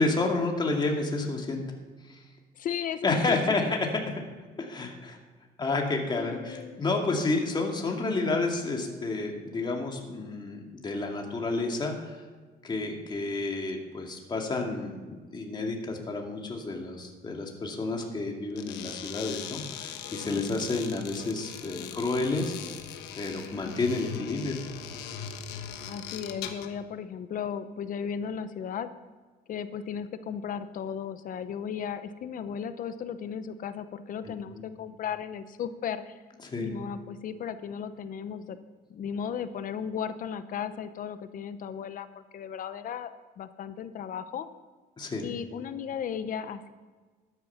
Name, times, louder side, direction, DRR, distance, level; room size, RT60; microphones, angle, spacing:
voice 1, 0.0-1.6 2.1-2.2 3.0-3.9 4.6-5.2 5.6-12.2 12.6-22.5 23.1-24.6 34.5-34.7 36.4-36.7 45.0-45.2, left 3 dB, 25° left, 1 dB, 2.3 m, -30 dB
voice 2, 2.5-3.7 6.2-6.8 21.9-22.1 25.9-28.9 29.5-36.2 36.6-38.6 38.9-43.1 43.4-44.5 45.2-46.7, left 7 dB, 55° left, 12 dB, 0.8 m, -35 dB
sound 1, 18.5-26.8, left 8 dB, 90° left, 1.2 m, -40 dB
13.0 x 9.8 x 5.8 m, 1.4 s
cardioid pair, 110°, 17 cm